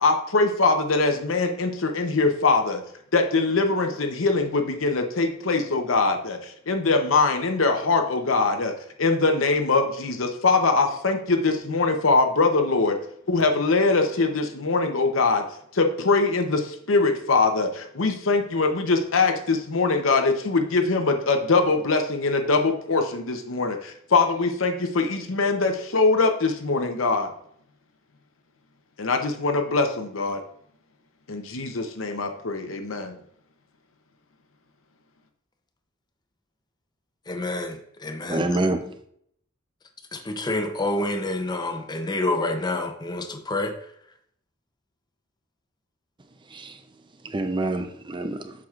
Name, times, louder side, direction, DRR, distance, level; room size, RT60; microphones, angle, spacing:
voice 1, 0.0-2.8 3.1-8.7 9.0-13.0 13.3-15.4 15.7-27.3 29.0-30.4 31.3-33.2, left 3 dB, 85° left, 0.8 m, -22 dB
voice 2, 37.3-38.5 40.1-43.7, left 2 dB, 20° left, 0.6 m, -28 dB
voice 3, 38.3-38.8 46.5-46.8 47.2-48.5, right 2 dB, 25° right, 0.5 m, -26 dB
7.5 x 6.0 x 2.5 m
head